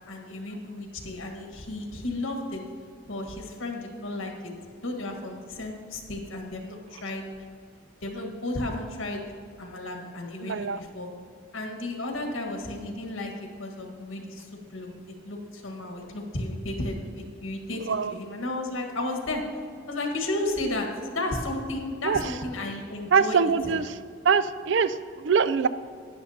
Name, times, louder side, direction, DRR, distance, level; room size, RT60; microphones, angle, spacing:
voice 1, 0.1-2.6 3.1-4.5 4.8-7.3 8.0-9.2 9.6-11.1 11.5-13.3 13.6-19.4 19.9-23.4 23.6-23.8, left 2 dB, 90° left, 2 dB, 1.6 m, -33 dB
voice 2, 10.4-10.8 17.8-18.1 22.0-22.2 23.1-24.0 24.2-25.7, right 6 dB, 65° right, 14 dB, 0.4 m, -23 dB
13.0 x 10.0 x 2.8 m, 2.1 s
head